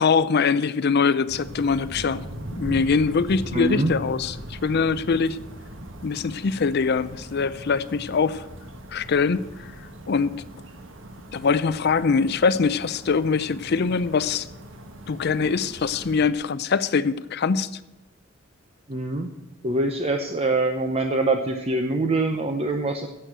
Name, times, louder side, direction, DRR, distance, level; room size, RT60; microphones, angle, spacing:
voice 1, 0.0-2.2 2.6-5.4 6.0-8.4 8.9-9.7 10.1-10.4 11.3-14.5 15.1-17.7, left 5 dB, 55° left, 15 dB, 0.5 m, -23 dB
sound 1, 1.3-16.3, right 1 dB, 70° right, 1.4 m, -39 dB
voice 2, 3.5-3.9 18.9-19.3 19.6-23.1, right 2 dB, 30° right, 5 dB, 0.7 m, -24 dB
11.0 x 7.7 x 8.0 m, 1.0 s
head